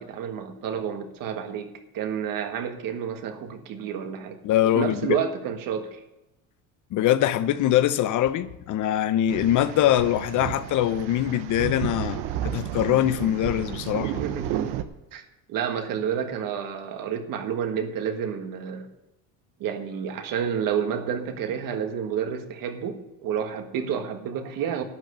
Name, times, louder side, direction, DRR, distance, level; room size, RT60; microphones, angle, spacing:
voice 1, 0.0-4.4 4.6-6.0 14.2-14.7 15.1-15.2 15.5-18.9 19.6-24.8, right 8 dB, 60° right, 1.7 m, -30 dB
voice 2, 4.4-5.2 6.9-14.2, left 12 dB, 50° left, 0.7 m, -23 dB
sound 1, 9.3-14.8, right 11 dB, 85° right, 1.0 m, -32 dB
12.0 x 9.2 x 6.8 m
cardioid pair, 135°, 39 cm